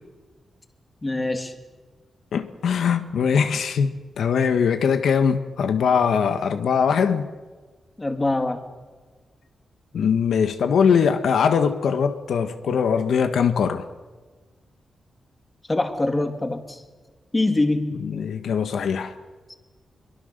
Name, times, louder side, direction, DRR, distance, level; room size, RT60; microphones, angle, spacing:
voice 1, 1.0-1.5 8.0-8.6 15.7-16.8 17.3-18.0, left 2 dB, 20° left, 2.2 m, -24 dB
voice 2, 2.3-7.3 9.9-13.9 18.0-19.1, left 6 dB, 85° left, 1.4 m, -21 dB
26.0 x 23.0 x 6.7 m
wide cardioid pair, 150°, 0 cm